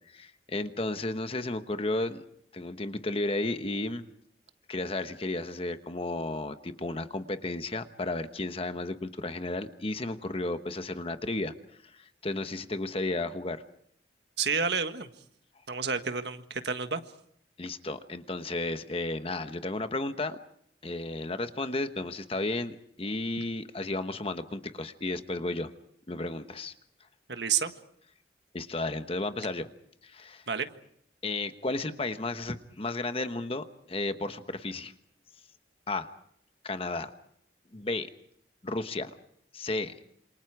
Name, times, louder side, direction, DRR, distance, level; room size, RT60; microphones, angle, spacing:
voice 1, 0.1-2.2 2.5-4.1 4.7-11.5 11.8-13.6 17.6-20.4 20.8-25.7 26.1-26.7 28.5-29.7 30.0-30.4 31.2-34.9 35.9-36.1 36.6-37.1 37.7-38.1 38.6-39.2 39.5-39.9, left 2 dB, 30° left, 9 dB, 1.1 m, -33 dB
voice 2, 14.4-15.1 15.7-17.0 27.3-27.7 30.5-30.7, right 6 dB, 70° right, 8 dB, 1.6 m, -29 dB
27.5 x 27.5 x 4.8 m, 0.68 s
head